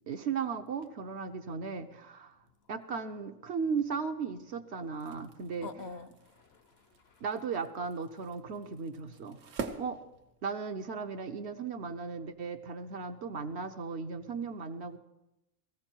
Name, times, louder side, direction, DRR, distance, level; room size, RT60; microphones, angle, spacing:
voice 1, 0.1-2.4 2.7-5.9 7.2-10.0 10.4-15.0, right 5 dB, 60° right, 7 dB, 1.0 m, -36 dB
sound 1, 4.8-10.8, right 5 dB, 75° right, 1.4 m, -46 dB
voice 2, 5.6-7.2, left 4 dB, 60° left, 11 dB, 0.9 m, -47 dB
17.5 x 15.0 x 4.5 m, 0.91 s
omnidirectional pair, 1.3 m